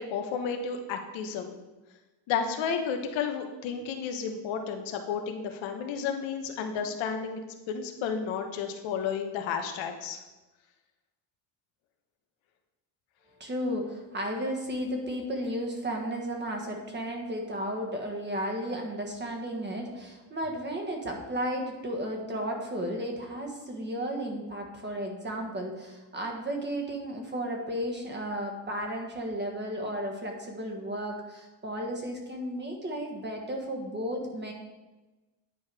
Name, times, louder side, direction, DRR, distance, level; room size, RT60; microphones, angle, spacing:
voice 1, 0.0-1.5 2.3-7.4 7.7-10.2, left 6 dB, 85° left, 5 dB, 1.2 m, -32 dB
voice 2, 13.4-34.5, equal, 25° right, 2 dB, 1.4 m, -34 dB
9.5 x 4.7 x 4.8 m, 1.1 s
cardioid pair, 130°, 45 cm